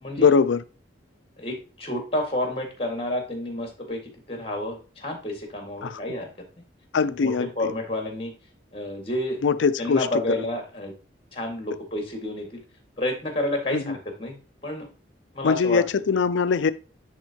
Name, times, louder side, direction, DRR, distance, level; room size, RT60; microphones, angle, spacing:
voice 1, 0.2-0.6 5.8-6.0 6.9-7.5 9.4-10.1 13.7-13.9 15.4-16.7, left 5 dB, 90° left, 0.5 m, -21 dB
voice 2, 1.4-4.0 4.3-6.3 7.0-8.3 8.7-9.4 9.8-10.9 11.3-12.6 13.0-14.4 14.6-14.9 15.3-15.8, left 1 dB, 30° left, 1.8 m, -30 dB
10.5 x 3.6 x 2.8 m
head